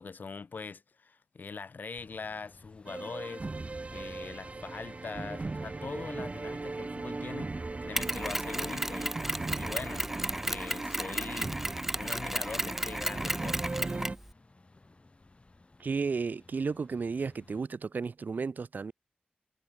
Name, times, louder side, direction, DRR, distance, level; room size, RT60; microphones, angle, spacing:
voice 1, 0.0-3.5 3.9-9.1 9.6-10.1 10.4-11.6 12.0-14.1, left 4 dB, 75° left, 1.0 m, -42 dB
sound 1, 1.9-17.6, left 2 dB, 40° left, 2.9 m, -59 dB
sound 2, 2.9-14.2, right 3 dB, 45° right, 1.2 m, -38 dB
Mechanisms, 8.0-14.2, right 1 dB, 10° right, 0.9 m, -34 dB
voice 2, 15.8-18.9, right 5 dB, 70° right, 0.5 m, -33 dB
wide cardioid pair, 65°, 3 cm